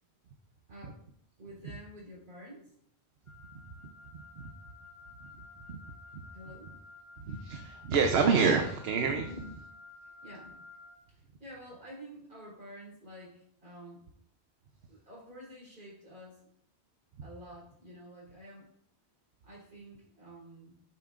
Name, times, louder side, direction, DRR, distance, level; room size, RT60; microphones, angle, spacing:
voice 1, 0.7-1.0 1.4-2.7 6.3-6.7 9.3-9.5 10.2-10.6 11.1-14.0 14.9-16.5 17.2-18.7 19.4-20.8, equal, 50° right, -5 dB, 3.9 m, -49 dB
Wind instrument woodwind instrument, 3.3-11.0, left 4 dB, 15° left, 2.3 m, -53 dB
voice 2, 7.3-9.3, right 5 dB, 70° right, 5 dB, 0.9 m, -27 dB
9.0 x 7.4 x 2.5 m, 0.67 s
omnidirectional pair, 1.1 m